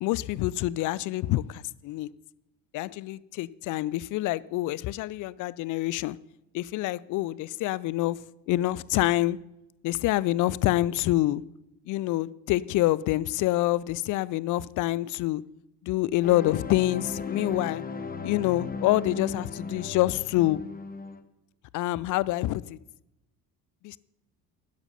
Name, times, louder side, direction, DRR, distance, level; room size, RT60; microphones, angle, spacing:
voice 1, 0.0-2.1 2.7-6.2 6.5-8.2 8.5-9.4 9.8-11.4 11.9-15.4 15.8-17.8 18.2-20.6 21.7-22.8 23.8-24.0, left 16 dB, 40° left, 21 dB, 0.5 m, -26 dB
sound 1, 16.2-21.2, left 4 dB, 20° left, 1.1 m, -36 dB
12.0 x 10.5 x 5.7 m, 0.91 s
figure-of-eight pair, 60°, 48 cm